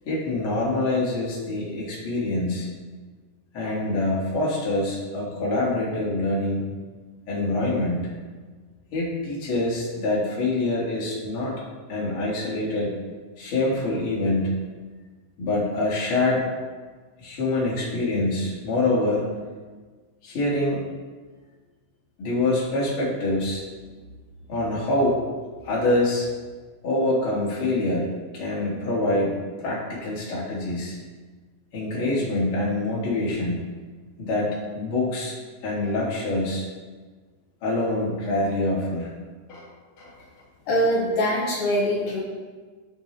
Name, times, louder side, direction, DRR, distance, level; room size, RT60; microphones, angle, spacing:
voice 1, 0.0-2.7 3.5-6.6 7.3-8.1 8.9-11.5 11.9-12.9 13.4-14.5 15.4-16.5 17.2-19.4 20.2-20.8 22.2-23.6 24.5-25.2 25.6-26.3 26.8-31.0 31.7-33.7 34.2-35.3 35.6-36.7 37.6-39.1 39.5-39.7 40.0-40.1, left 2 dB, 40° left, -6 dB, 2.8 m, -25 dB
voice 2, 40.7-42.2, equal, 70° left, -4 dB, 3.1 m, -23 dB
13.5 x 5.6 x 3.4 m, 1.4 s
omnidirectional pair, 3.8 m